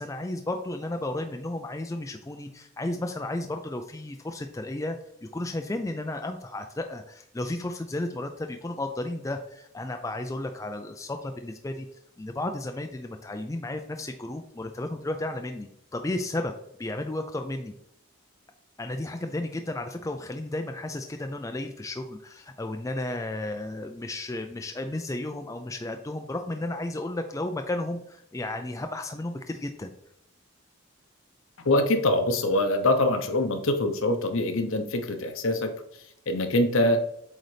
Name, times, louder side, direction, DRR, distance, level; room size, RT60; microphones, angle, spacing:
voice 1, 0.0-5.0 5.3-11.9 12.2-16.5 16.8-17.7 18.8-29.9, left 1 dB, 15° left, 6 dB, 0.3 m, -33 dB
voice 2, 31.6-35.7 36.3-37.0, left 1 dB, 70° left, 7 dB, 0.8 m, -24 dB
8.0 x 3.9 x 3.3 m, 0.74 s
head